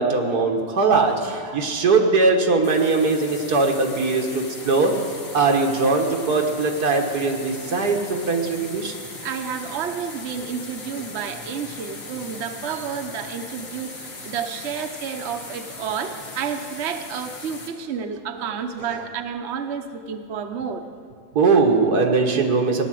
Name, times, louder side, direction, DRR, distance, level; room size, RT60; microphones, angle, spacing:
voice 1, 0.0-8.9 18.8-18.9 21.4-22.9, right 4 dB, 90° right, 2 dB, 2.0 m, -20 dB
sound 1, 2.6-17.7, left 3 dB, 60° left, 2.2 m, -38 dB
voice 2, 9.2-20.8, right 7 dB, 50° right, 5 dB, 1.1 m, -30 dB
17.5 x 10.5 x 7.7 m, 2.2 s
omnidirectional pair, 1.6 m